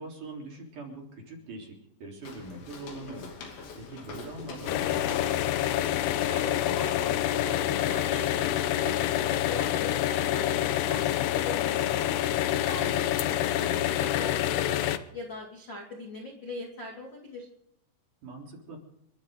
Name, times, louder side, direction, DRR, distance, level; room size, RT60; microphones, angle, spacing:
voice 1, 0.0-3.3 3.7-5.5 12.8-13.0 18.2-18.8, right 2 dB, 45° right, -1 dB, 4.7 m, -42 dB
Walk footsteps, 2.2-8.9, left 4 dB, 60° left, 4.6 m, -45 dB
sound 1, 4.7-15.0, left 12 dB, 80° left, 2.4 m, -27 dB
voice 2, 6.3-12.1 12.7-13.1 13.4-17.5, left 1 dB, 35° left, 0 dB, 2.0 m, -41 dB
30.0 x 12.0 x 3.8 m, 0.76 s
omnidirectional pair, 5.7 m